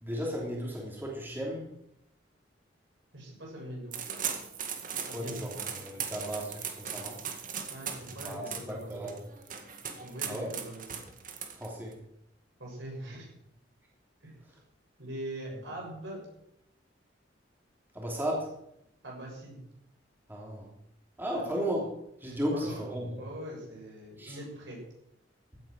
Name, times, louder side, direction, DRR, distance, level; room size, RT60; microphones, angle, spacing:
voice 1, 0.0-1.7 5.1-7.2 8.2-9.1 10.3-10.5 11.5-11.9 17.9-18.5 20.3-20.7 21.2-21.8 22.2-23.2 24.2-24.4, equal, 10° right, -2 dB, 3.0 m, -35 dB
voice 2, 3.1-4.0 5.1-5.5 7.7-9.1 10.0-10.8 12.6-13.3 14.2-14.4 15.0-16.2 19.0-19.6 21.3-21.4 22.5-22.8 23.2-24.8, right 1 dB, 70° right, -2 dB, 6.6 m, -42 dB
sound 1, 3.9-11.9, right 7 dB, 45° right, 2.0 m, -38 dB
15.5 x 9.1 x 6.4 m, 0.78 s
head